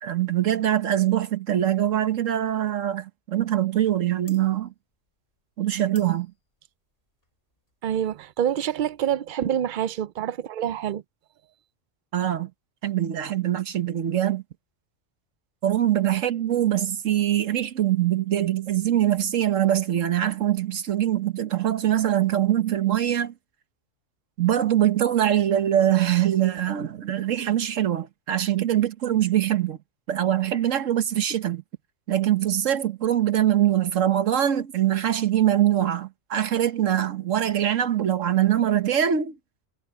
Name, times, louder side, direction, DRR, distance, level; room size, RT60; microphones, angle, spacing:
voice 1, 0.0-4.7 5.6-6.3 12.1-12.5 12.8-14.4 15.6-23.3 24.4-29.8 30.1-31.6 32.1-39.4, right 11 dB, 85° right, 1.5 m, -23 dB
sound 1, 4.2-9.3, left 2 dB, 45° left, 5.3 m, -55 dB
voice 2, 7.8-11.0, right 10 dB, 60° right, 0.5 m, -27 dB
omnidirectional pair, 1.3 m